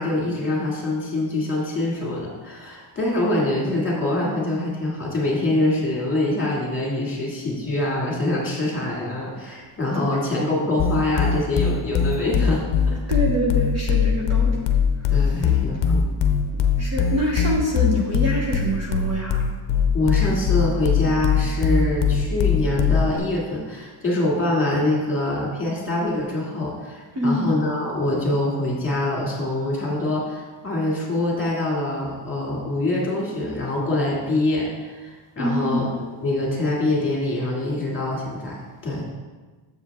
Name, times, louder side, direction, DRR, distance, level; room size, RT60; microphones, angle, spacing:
voice 1, 0.0-13.0 15.1-16.1 19.9-35.9 36.2-38.6 38.8-39.0, left 2 dB, 25° left, -4 dB, 2.2 m, -24 dB
sound 1, 10.8-23.2, left 6 dB, 55° left, 0.7 m, -21 dB
voice 2, 13.1-14.6 16.5-19.4 27.2-27.5 35.4-35.9, equal, 30° right, -2 dB, 1.0 m, -25 dB
7.1 x 7.1 x 3.5 m, 1.3 s
cardioid pair, 150°, 50 cm